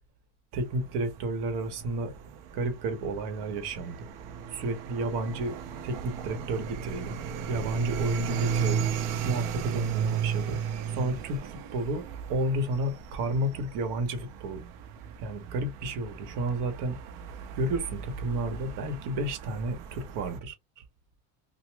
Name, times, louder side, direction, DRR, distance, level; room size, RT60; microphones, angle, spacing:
voice 1, 0.5-2.1 2.5-4.1 4.5-7.2 7.5-8.9 9.2-10.6 10.9-14.6 15.2-17.0 17.5-20.5, right 2 dB, 60° right, 1.1 m, -31 dB
sound 1, 0.5-20.4, right 7 dB, 75° right, 0.8 m, -35 dB
3.0 x 2.3 x 3.3 m
cardioid pair, 140°, 44 cm